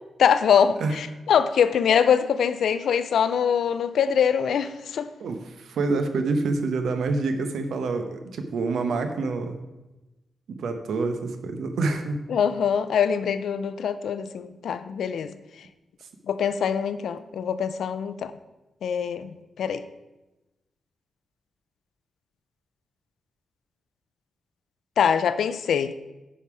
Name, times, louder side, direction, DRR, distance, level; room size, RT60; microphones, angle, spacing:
voice 1, 0.2-5.1 12.3-15.4 16.3-18.3 18.8-19.8 25.0-25.9, left 7 dB, 75° left, 12 dB, 0.5 m, -23 dB
voice 2, 5.2-9.6 10.5-12.2, right 3 dB, 80° right, 7 dB, 0.9 m, -27 dB
9.9 x 5.5 x 4.8 m, 1.0 s
wide cardioid pair, 160°, 0 cm